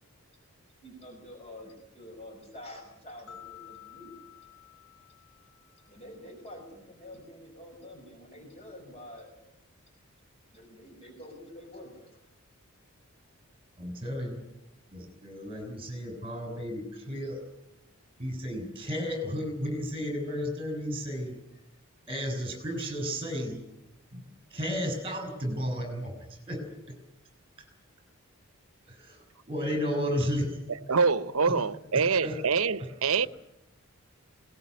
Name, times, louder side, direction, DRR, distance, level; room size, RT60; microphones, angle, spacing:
voice 1, 0.8-4.2 5.9-9.3 10.5-12.3, left 1 dB, 30° left, 5.3 m, -47 dB
sound 1, 3.3-6.4, left 12 dB, 80° left, 6.5 m, -52 dB
voice 2, 13.8-14.4 14.9-17.4 18.2-21.4 22.1-23.6 24.1-24.2 24.5-26.8 28.8-30.5 30.9-31.0 31.4-31.5 32.2-32.4, equal, 25° right, 6.5 m, -33 dB
voice 3, 30.9-33.3, right 5 dB, 75° right, 0.8 m, -25 dB
21.5 x 19.5 x 9.6 m
head